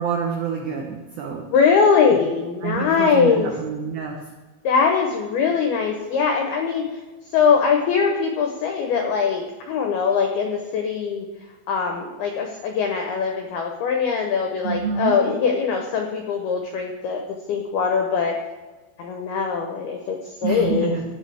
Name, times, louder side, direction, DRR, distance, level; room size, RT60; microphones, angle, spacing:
voice 1, 0.0-1.5 2.6-4.3 14.6-15.1 20.4-21.1, right 6 dB, 85° right, 1 dB, 2.1 m, -27 dB
voice 2, 1.5-3.5 4.6-6.9 7.3-11.3 11.7-17.2 17.5-18.4 19.0-20.9, left 6 dB, 85° left, 2 dB, 2.2 m, -21 dB
15.5 x 9.0 x 3.4 m, 1.2 s
omnidirectional pair, 5.7 m